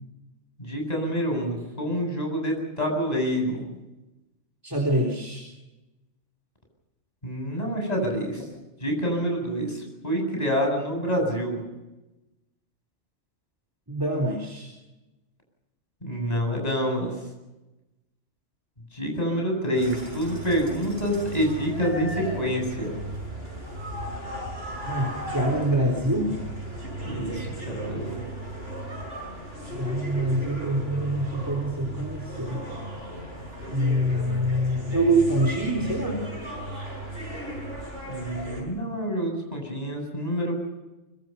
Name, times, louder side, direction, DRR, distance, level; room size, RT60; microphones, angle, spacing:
voice 1, 0.6-3.7 7.2-8.5 8.8-11.6 16.0-17.1 18.9-23.0 27.0-28.2 38.1-40.6, equal, 35° left, 1 dB, 8.2 m, -27 dB
voice 2, 4.6-5.4 13.9-14.7 24.9-26.4 29.8-32.6 33.7-36.2, right 1 dB, 15° right, 2 dB, 3.8 m, -25 dB
sound 1, 19.7-38.6, right 1 dB, 55° right, 8.3 m, -36 dB
25.0 x 25.0 x 5.6 m, 1.0 s
omnidirectional pair, 1.2 m